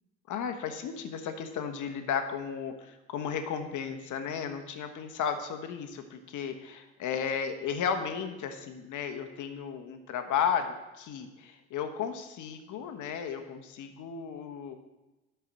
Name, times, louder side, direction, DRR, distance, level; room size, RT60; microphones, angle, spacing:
voice 1, 0.3-14.8, left 7 dB, 55° left, 7 dB, 1.2 m, -34 dB
10.5 x 4.6 x 7.5 m, 1.1 s
hypercardioid pair, 65°, 36 cm